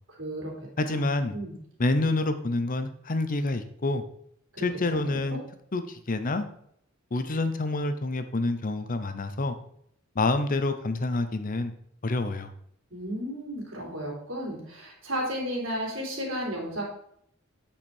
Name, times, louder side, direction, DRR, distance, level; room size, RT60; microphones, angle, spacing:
voice 1, 0.2-1.1 1.3-1.5 4.5-4.6 4.9-5.4 12.9-16.8, equal, 85° right, -2 dB, 3.1 m, -34 dB
voice 2, 0.8-1.3 1.8-4.0 4.6-5.4 5.7-6.4 7.1-9.6 10.2-11.7 12.0-12.5, left 2 dB, 45° left, 10 dB, 0.7 m, -27 dB
8.7 x 5.1 x 4.5 m, 0.69 s
head